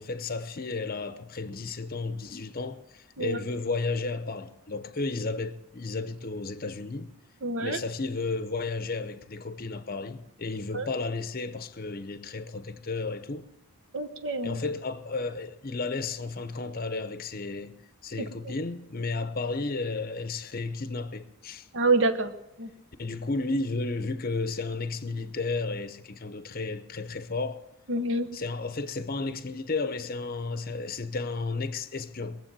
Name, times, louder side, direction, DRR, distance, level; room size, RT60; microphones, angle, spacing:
voice 1, 0.0-7.1 7.6-13.5 14.4-17.7 18.0-21.7 23.0-27.6 28.3-32.4, left 3 dB, 40° left, 0.8 m, -33 dB
voice 2, 7.4-7.8 10.7-10.9 13.9-14.6 18.2-18.3 21.7-22.3 22.6-22.7 27.9-28.3, right 2 dB, 55° right, 1.0 m, -27 dB
21.0 x 7.6 x 7.4 m
head